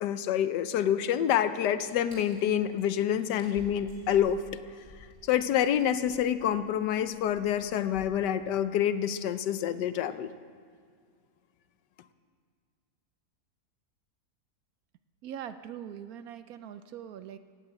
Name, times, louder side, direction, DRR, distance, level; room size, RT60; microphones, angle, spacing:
voice 1, 0.0-4.4 5.3-10.3, left 10 dB, 80° left, 12 dB, 1.3 m, -27 dB
sound 1, 1.7-2.6 2.9-3.0 3.3-8.1, right 1 dB, 35° right, 3.6 m, -53 dB
voice 2, 15.2-17.4, right 9 dB, 70° right, 12 dB, 0.9 m, -42 dB
16.5 x 7.8 x 8.8 m, 2.1 s
omnidirectional pair, 1.8 m